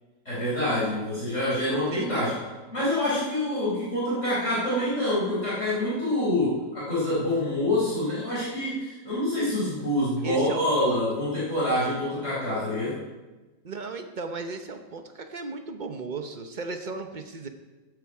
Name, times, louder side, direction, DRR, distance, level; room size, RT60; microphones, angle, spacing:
voice 1, 0.2-2.4 2.7-13.0, left 1 dB, 35° left, -9 dB, 4.5 m, -26 dB
voice 2, 1.9-2.3 10.2-11.0 13.6-17.5, right 3 dB, 65° right, 6 dB, 0.4 m, -35 dB
15.5 x 9.8 x 4.8 m, 1.2 s
omnidirectional pair, 2.1 m